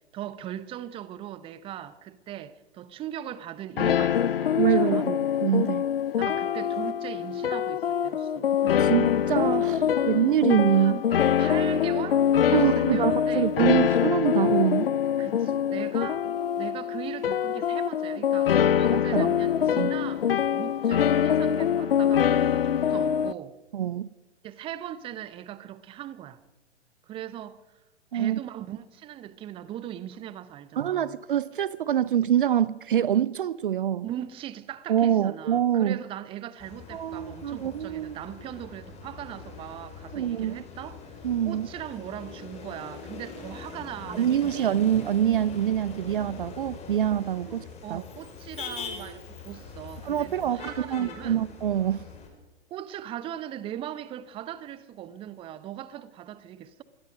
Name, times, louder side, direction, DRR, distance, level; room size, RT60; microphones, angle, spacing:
voice 1, 0.1-5.1 6.1-8.6 10.7-11.0 11.4-13.5 15.2-16.3 16.6-23.5 24.4-26.4 27.1-27.6 28.1-31.2 34.0-41.2 41.4-44.8 47.4-51.4 52.7-56.8, right 11 dB, 15° right, 0.9 m, -39 dB
sound 1, 3.8-23.3, left 9 dB, 55° left, 0.8 m, -24 dB
voice 2, 4.6-5.9 8.6-11.0 12.5-14.9 19.1-19.3 19.8-19.9 23.7-24.1 28.1-28.4 30.8-34.1 34.9-36.0 36.9-38.2 40.1-40.6 41.2-41.7 44.1-47.6 47.9-48.0 50.0-50.6 50.9-52.1, right 10 dB, 50° right, 0.7 m, -25 dB
Motor vehicle (road), 36.6-52.3, left 5 dB, 20° left, 5.0 m, -42 dB
26.5 x 21.5 x 5.3 m
figure-of-eight pair, 115°, 33 cm